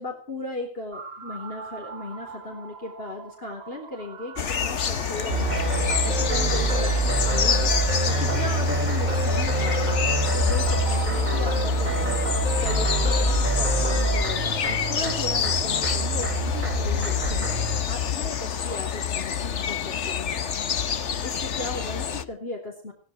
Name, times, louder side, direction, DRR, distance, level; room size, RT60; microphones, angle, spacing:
voice 1, 0.0-17.5 17.9-22.9, left 2 dB, 55° left, 1 dB, 4.1 m, -37 dB
sound 1, 0.9-14.3, right 5 dB, 60° right, 1.7 m, -42 dB
sound 2, 4.4-22.2, left 8 dB, 75° left, 1.4 m, -28 dB
sound 3, 5.3-17.8, right 2 dB, 40° right, 1.9 m, -25 dB
17.5 x 15.5 x 4.4 m, 0.37 s
omnidirectional pair, 1.2 m